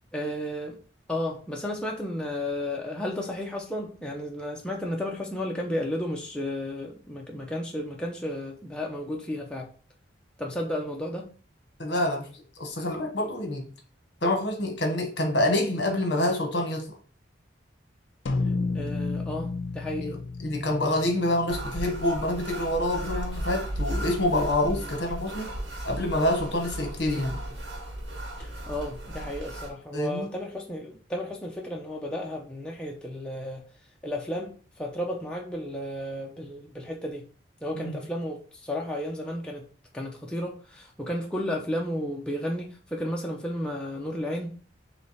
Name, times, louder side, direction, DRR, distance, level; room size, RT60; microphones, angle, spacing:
voice 1, 0.1-0.8 1.1-9.7 10.4-11.3 18.7-20.1 24.7-24.9 28.4-33.6 34.0-37.2 37.6-39.6 39.9-44.5, left 1 dB, 5° left, 0.4 m, -33 dB
voice 2, 11.8-13.7 14.2-16.9 20.0-25.5 25.8-27.4 29.9-30.3 37.7-38.0, left 1 dB, 65° left, 1.0 m, -27 dB
sound 1, 18.3-22.9, left 3 dB, 80° left, 0.5 m, -32 dB
sound 2, 21.5-29.7, right 1 dB, 80° right, 1.4 m, -35 dB
3.2 x 3.1 x 4.0 m
head